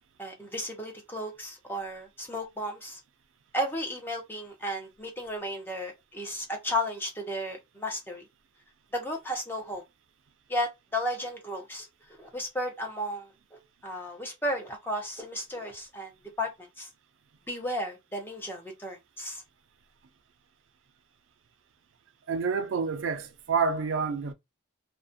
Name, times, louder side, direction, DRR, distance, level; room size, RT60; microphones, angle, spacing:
voice 1, 0.2-3.0 3.5-8.2 8.9-9.8 10.5-11.9 12.2-16.1 16.4-16.9 17.5-19.4, equal, 10° left, 0.6 m, -34 dB
voice 2, 22.3-24.3, right 5 dB, 70° right, 0.4 m, -28 dB
2.4 x 2.1 x 2.5 m
head